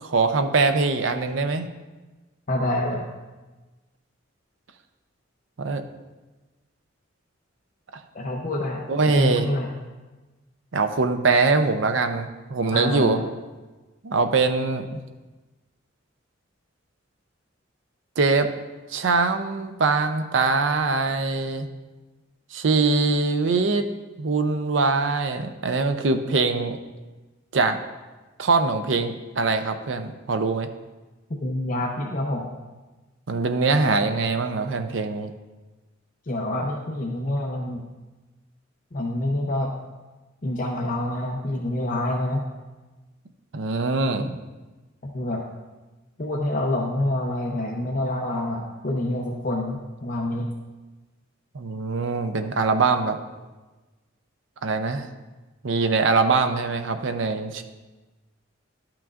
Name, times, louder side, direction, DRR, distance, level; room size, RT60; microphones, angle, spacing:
voice 1, 0.0-1.7 5.6-5.8 8.9-9.5 10.7-13.2 14.0-15.0 18.2-18.5 18.9-21.7 22.5-23.8 24.2-26.8 27.5-27.8 28.4-30.7 33.3-35.3 43.5-44.4 51.5-53.2 54.6-55.1 55.6-57.6, right 3 dB, 75° right, 8 dB, 0.6 m, -22 dB
voice 2, 2.5-3.1 8.1-9.7 12.7-13.2 31.3-32.5 36.3-37.8 38.9-39.8 40.4-42.5 45.1-45.4 46.2-50.5, left 1 dB, 45° left, 0 dB, 0.7 m, -27 dB
12.0 x 5.9 x 2.4 m, 1.2 s
head